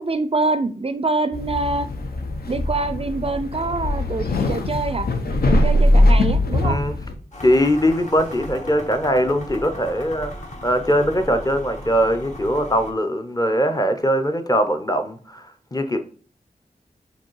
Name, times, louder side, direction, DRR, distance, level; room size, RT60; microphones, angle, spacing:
voice 1, 0.0-1.9 2.5-5.1 5.5-6.8, right 3 dB, 40° right, 0.4 m, -25 dB
sound 1, 1.3-7.1, left 1 dB, 80° left, 0.8 m, -20 dB
voice 2, 6.6-6.9 7.4-10.3 10.6-16.0, equal, 25° left, 0.7 m, -21 dB
sound 2, 7.3-12.9, left 1 dB, 50° left, 1.5 m, -36 dB
5.1 x 4.0 x 4.6 m
wide cardioid pair, 90°, 16 cm